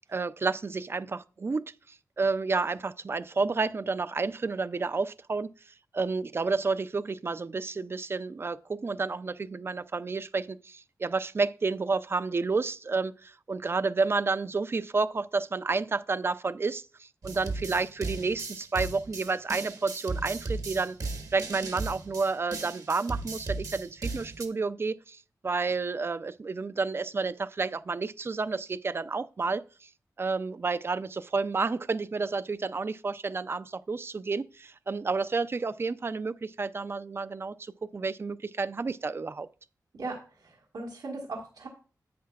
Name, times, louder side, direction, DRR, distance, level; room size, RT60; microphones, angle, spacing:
voice 1, 0.1-5.5 5.9-21.0 21.3-29.9 30.2-39.5, right 4 dB, 35° right, 0.4 m, -30 dB
sound 1, 17.2-24.5, right 3 dB, 65° right, 1.3 m, -36 dB
voice 2, 40.4-41.7, right 3 dB, 85° right, 1.5 m, -38 dB
10.0 x 8.5 x 2.4 m
wide cardioid pair, 115°, 7 cm